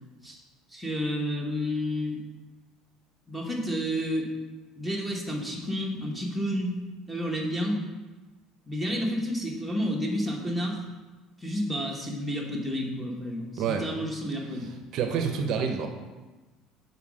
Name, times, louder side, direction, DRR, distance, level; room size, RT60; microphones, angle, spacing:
voice 1, 0.7-2.2 3.3-4.3 4.8-6.8 7.1-7.8 8.7-10.8 11.4-14.7, equal, ahead, -1 dB, 0.9 m, -30 dB
voice 2, 14.9-15.9, right 6 dB, 55° right, 5 dB, 0.6 m, -27 dB
5.8 x 4.0 x 4.8 m, 1.2 s
cardioid pair, 145°, 0 cm